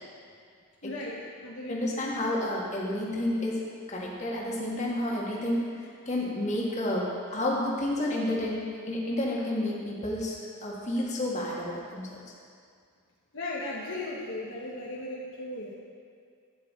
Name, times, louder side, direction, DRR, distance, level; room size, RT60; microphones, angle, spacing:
voice 1, 0.8-2.0 13.3-15.7, left 2 dB, 55° left, -5 dB, 1.1 m, -37 dB
voice 2, 1.7-3.6 3.9-12.2, left 1 dB, 30° left, -4 dB, 1.7 m, -30 dB
12.0 x 9.3 x 3.7 m, 2.2 s
head